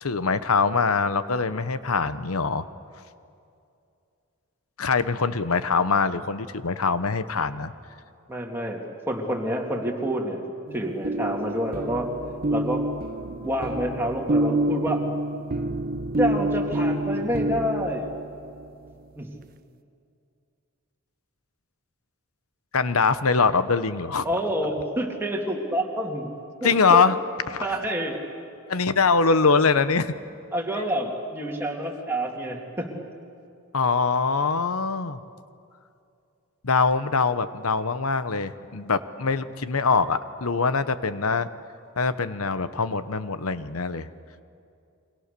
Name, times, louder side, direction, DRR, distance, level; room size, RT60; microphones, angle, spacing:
voice 1, 0.0-2.6 4.8-7.7 22.7-24.2 26.6-27.2 27.5-27.6 28.7-30.1 33.7-35.2 36.6-41.5 42.0-44.1, left 4 dB, 85° left, 13 dB, 1.0 m, -23 dB
voice 2, 8.3-8.8 9.1-10.4 10.7-12.1 12.5-12.8 13.3-15.0 16.2-18.1 19.2-19.3 24.2-26.3 26.6-27.0 27.6-28.2 30.5-32.9, equal, 10° right, 0 dB, 2.7 m, -28 dB
sound 1, 10.7-18.6, right 1 dB, 40° right, 0.6 m, -28 dB
29.0 x 24.0 x 6.9 m, 2.5 s
head